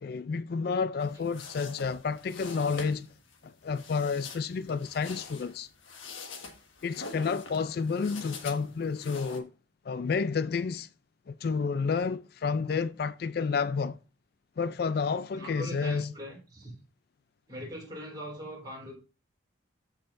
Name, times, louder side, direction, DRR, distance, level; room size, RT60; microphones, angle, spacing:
voice 1, 0.0-3.1 3.4-5.7 6.8-9.5 9.8-10.9 11.3-14.0 14.6-16.1, left 5 dB, 50° left, 0.3 m, -30 dB
sound 1, 1.0-9.4, left 4 dB, 90° left, 1.5 m, -45 dB
voice 2, 15.3-16.7 17.5-18.9, equal, 20° right, 3.9 m, -41 dB
13.5 x 5.8 x 2.6 m
head